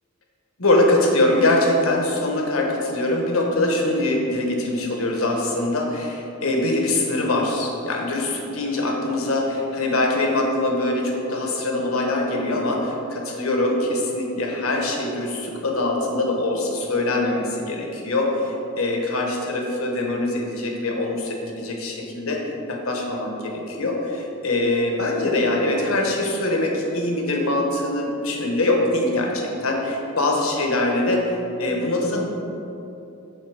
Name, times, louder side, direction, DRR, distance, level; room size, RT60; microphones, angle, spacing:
voice 1, 0.6-22.4 22.7-32.3, left 2 dB, 70° left, 0 dB, 1.2 m, -23 dB
8.2 x 3.9 x 6.5 m, 2.9 s
head